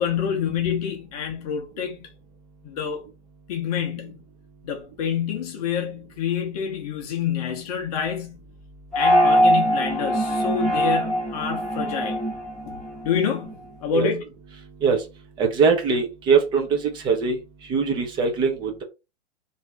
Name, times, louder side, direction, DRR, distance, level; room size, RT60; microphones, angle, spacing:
voice 1, 0.0-2.1 2.6-3.1 3.5-4.2 4.6-8.4 8.9-12.2 12.7-12.8 13.0-14.2, left 7 dB, 35° left, 0.7 m, -27 dB
sound 1, 8.9-13.5, equal, ahead, 0.9 m, -22 dB
voice 2, 15.4-17.4 17.7-18.8, right 5 dB, 15° right, 0.5 m, -21 dB
2.6 x 2.5 x 3.3 m
figure-of-eight pair, 110°, 34 cm